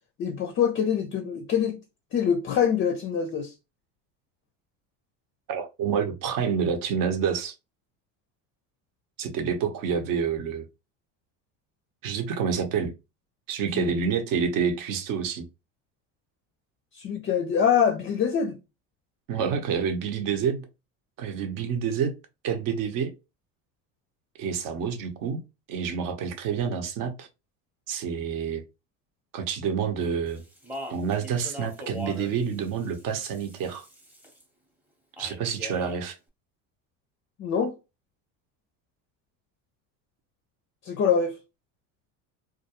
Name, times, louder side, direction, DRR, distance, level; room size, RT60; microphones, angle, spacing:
voice 1, 0.2-1.8 2.1-3.5 13.7-13.9 16.9-18.6 37.4-37.7 40.8-41.3, left 7 dB, 35° left, 0.4 m, -24 dB
voice 2, 5.5-7.5 9.2-10.7 12.0-12.9 13.5-15.5 19.3-20.7 21.2-22.1 22.4-23.1 24.4-25.4 25.7-27.3 27.9-28.6 29.3-30.4 30.9-33.9 35.2-36.2, right 6 dB, 55° right, 0.8 m, -28 dB
Speech, 30.3-34.4 35.2-36.0, left 1 dB, 5° right, 0.7 m, -41 dB
2.3 x 2.2 x 2.8 m
supercardioid pair, 100°, 39 cm